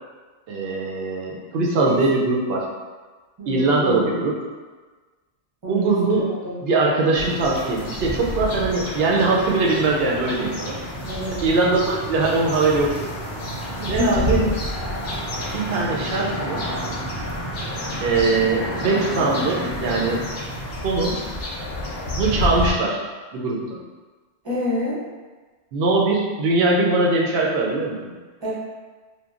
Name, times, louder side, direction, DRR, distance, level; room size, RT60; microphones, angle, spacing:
voice 1, 0.5-2.7 3.5-4.4 5.7-6.3 6.6-10.8 11.3-13.1 13.8-14.4 15.5-16.6 18.0-20.2 20.8-21.1 22.2-23.0 23.3-23.8 25.7-28.1, right 3 dB, 65° right, -2 dB, 0.7 m, -21 dB
voice 2, 3.4-4.2 5.6-6.6 11.0-11.7 13.8-14.5 24.4-25.0 28.4-28.5, left 1 dB, 30° right, -8 dB, 0.7 m, -28 dB
sound 1, 7.1-22.7, equal, 65° left, 0.8 m, -29 dB
2.9 x 2.2 x 2.4 m, 1.3 s
omnidirectional pair, 1.2 m